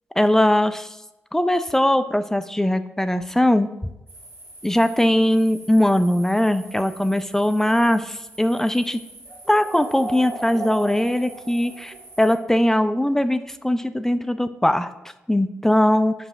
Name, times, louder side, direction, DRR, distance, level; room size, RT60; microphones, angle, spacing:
voice 1, 0.2-1.0 1.3-3.7 4.6-9.0 9.5-14.9 15.3-16.1, left 1 dB, 10° left, 11 dB, 0.4 m, -20 dB
sound 1, 4.1-12.4, right 2 dB, 50° right, 1.8 m, -39 dB
5.4 x 4.9 x 4.6 m, 0.94 s
hypercardioid pair, 40°, 5 cm